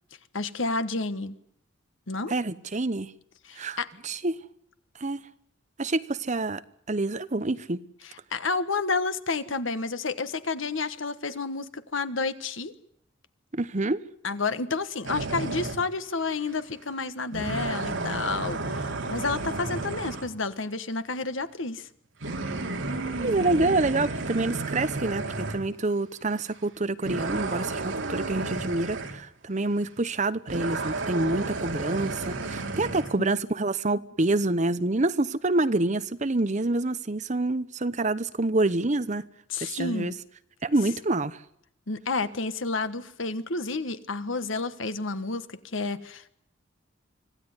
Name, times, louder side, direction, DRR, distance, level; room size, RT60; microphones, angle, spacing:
voice 1, 0.3-1.4 2.1-2.3 3.4-3.9 8.0-12.7 14.2-21.9 33.2-33.3 39.5-40.1 41.9-46.3, left 3 dB, 70° left, 1.4 m, -30 dB
voice 2, 2.3-3.1 3.6-4.4 5.0-5.2 5.8-6.6 6.9-7.8 13.5-14.0 23.2-39.2 39.6-40.1 40.6-41.4, right 2 dB, 35° right, 0.9 m, -27 dB
sound 1, 15.0-15.9 16.5-16.6 17.3-20.3 22.2-25.7 26.4-26.5 27.0-29.2 30.5-33.1, right 3 dB, 70° right, 2.6 m, -32 dB
25.5 x 16.0 x 9.6 m
head